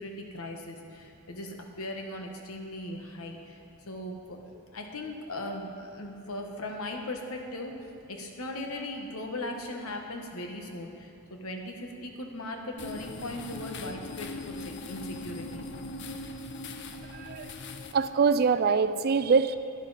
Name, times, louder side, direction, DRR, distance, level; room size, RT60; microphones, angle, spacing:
voice 1, 0.0-3.6 3.9-4.4 4.7-7.7 8.1-15.7, left 1 dB, 85° left, 2 dB, 1.2 m, -38 dB
sound 1, 12.8-17.9, left 2 dB, 55° left, 0.6 m, -40 dB
voice 2, 17.0-17.5 17.9-19.6, right 5 dB, 45° right, 12 dB, 0.4 m, -24 dB
11.5 x 10.5 x 4.1 m, 2.6 s
head